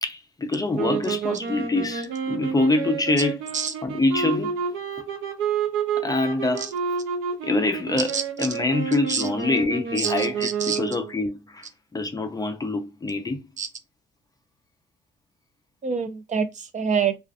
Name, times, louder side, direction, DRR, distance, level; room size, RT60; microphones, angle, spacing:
voice 1, 0.0-3.5 3.8-4.5 6.0-6.7 7.4-11.7 11.9-13.4, left 2 dB, 20° left, 0.4 m, -25 dB
sound 1, 0.7-11.1, right 6 dB, 90° right, 0.6 m, -29 dB
voice 2, 10.0-10.8 13.6-13.7 15.8-17.2, right 6 dB, 40° right, 0.5 m, -26 dB
2.4 x 2.3 x 2.4 m
cardioid pair, 90°, 20 cm